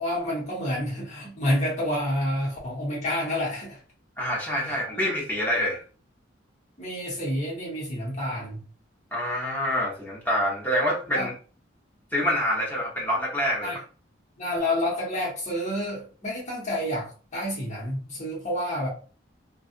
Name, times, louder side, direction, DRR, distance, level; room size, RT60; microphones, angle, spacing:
voice 1, 0.0-3.8 4.7-5.0 6.8-8.6 11.1-11.3 13.6-13.8 14.4-18.9, left 1 dB, 40° left, -4 dB, 1.1 m, -29 dB
voice 2, 4.2-5.8 9.1-11.3 12.1-13.7, equal, 10° left, -4 dB, 0.9 m, -26 dB
2.7 x 2.5 x 2.4 m, 0.38 s
head